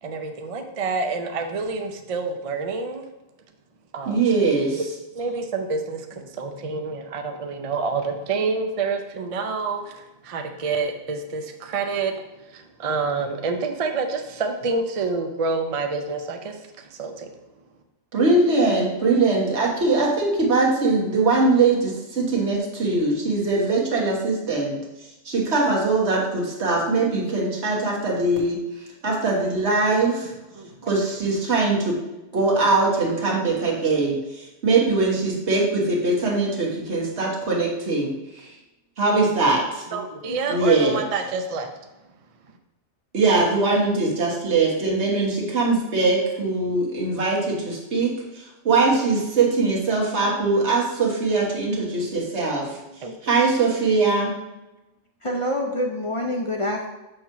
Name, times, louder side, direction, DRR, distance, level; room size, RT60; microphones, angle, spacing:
voice 1, 0.0-3.0 3.9-4.2 5.1-17.4 30.5-31.0 39.9-41.7 52.9-53.1, right 4 dB, 45° right, 5 dB, 0.5 m, -28 dB
voice 2, 4.1-4.8 18.1-24.8 25.2-28.6 29.0-30.3 30.9-31.9 32.3-38.1 38.4-38.5 39.0-39.8 40.5-41.0 43.1-52.8 53.2-54.3, right 3 dB, 80° right, -3 dB, 1.7 m, -21 dB
voice 3, 55.2-56.9, left 1 dB, 35° left, 0 dB, 0.5 m, -26 dB
6.5 x 3.0 x 5.7 m, 1.0 s
omnidirectional pair, 1.1 m